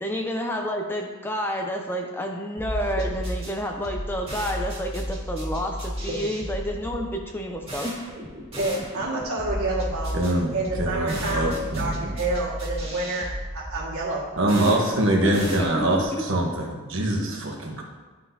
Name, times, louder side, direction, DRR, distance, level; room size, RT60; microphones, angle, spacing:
voice 1, 0.0-8.1 15.2-16.2, equal, 10° left, 2 dB, 0.5 m, -30 dB
sound 1, 2.6-16.2, equal, 25° right, 2.1 m, -34 dB
voice 2, 8.6-10.2 10.5-13.3 13.5-14.3 14.6-14.7, right 2 dB, 75° right, -5 dB, 1.9 m, -29 dB
voice 3, 10.1-11.9 14.4-17.8, right 1 dB, 60° right, 0 dB, 1.1 m, -24 dB
11.5 x 3.9 x 2.8 m, 1.3 s
head